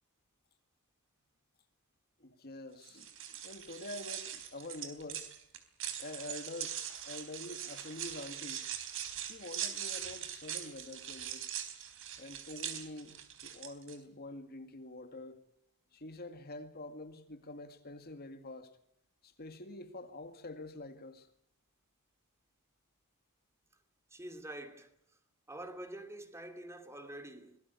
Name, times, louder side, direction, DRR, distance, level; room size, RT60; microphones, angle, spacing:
voice 1, 2.2-5.3 6.0-8.6 9.2-11.5 12.2-13.2 13.4-15.4 15.9-18.8 19.2-21.3, left 2 dB, 45° left, 2.0 m, -46 dB
sound 1, 2.8-14.0, right 10 dB, 60° right, 3.9 m, -42 dB
voice 2, 24.1-24.9 25.5-27.6, right 1 dB, 10° right, 2.6 m, -46 dB
25.0 x 19.0 x 8.4 m
head